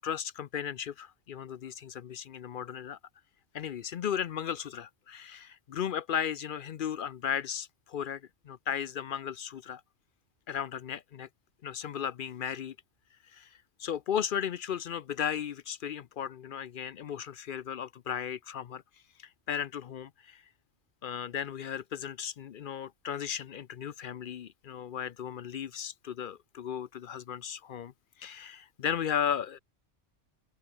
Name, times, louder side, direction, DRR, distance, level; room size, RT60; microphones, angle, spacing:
voice 1, 0.0-3.0 3.5-9.8 10.5-11.3 11.6-12.8 13.3-18.8 19.2-20.4 21.0-27.9 28.2-29.6, left 8 dB, 55° left, 0.6 m, -35 dB
omnidirectional pair, 1.3 m